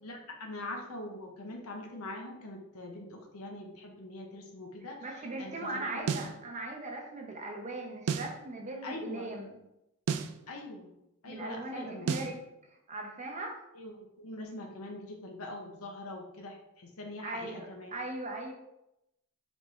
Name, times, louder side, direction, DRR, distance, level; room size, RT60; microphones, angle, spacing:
voice 1, 0.0-6.3 8.8-9.3 10.5-10.9 11.2-12.2 13.7-17.9, left 2 dB, 80° left, 2 dB, 0.8 m, -43 dB
voice 2, 5.0-9.6 11.3-12.3 12.7-13.6 17.2-17.7 17.9-18.5, right 2 dB, 30° right, 1 dB, 0.7 m, -39 dB
sound 1, 6.1-6.4 8.1-8.4 10.1-10.4 12.1-12.4, right 6 dB, 80° right, 0.3 m, -31 dB
4.2 x 3.4 x 3.1 m, 0.87 s
head